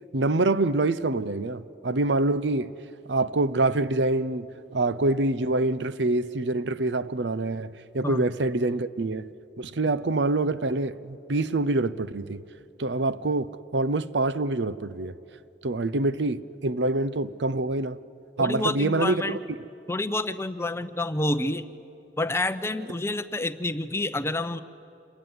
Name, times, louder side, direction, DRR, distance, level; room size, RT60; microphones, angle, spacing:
voice 1, 0.1-2.7 3.1-9.3 9.6-12.4 12.8-15.2 15.6-18.0 18.4-19.6, right 2 dB, 70° right, 0.7 m, -26 dB
voice 2, 18.4-19.4 19.9-21.6 22.2-24.6, left 2 dB, 15° left, 0.7 m, -28 dB
27.5 x 21.5 x 9.6 m
head